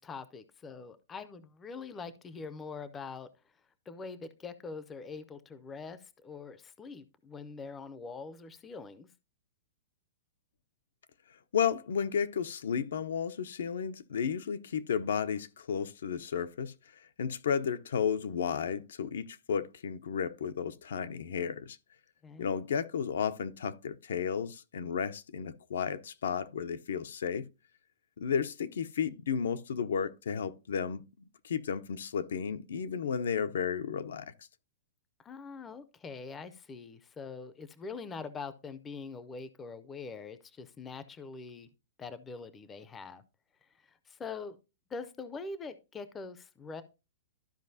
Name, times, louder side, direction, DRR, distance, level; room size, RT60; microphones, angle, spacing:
voice 1, 0.0-3.3 3.9-9.1 22.2-22.5 35.2-41.7 42.0-43.2 44.1-44.6 44.9-46.8, left 4 dB, 10° left, 0.4 m, -43 dB
voice 2, 11.5-16.7 17.2-21.8 22.4-27.5 28.2-31.0 31.4-34.3, left 7 dB, 80° left, 0.6 m, -33 dB
13.0 x 4.9 x 2.7 m
hypercardioid pair, 170°, 0 cm